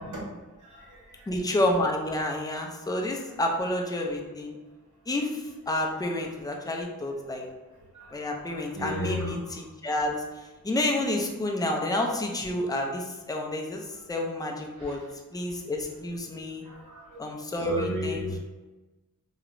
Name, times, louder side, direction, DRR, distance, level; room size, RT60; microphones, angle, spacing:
voice 1, 0.6-1.3 7.9-8.1 8.4-9.4 14.8-14.9 16.6-17.2 17.6-18.3, left 1 dB, 60° right, -4 dB, 0.9 m, -34 dB
voice 2, 1.3-4.6 5.1-7.4 8.1-15.0 15.3-16.6 17.2-18.4, left 1 dB, 10° left, 1 dB, 0.4 m, -29 dB
2.8 x 2.1 x 2.5 m, 1.2 s
cardioid pair, 60°, 34 cm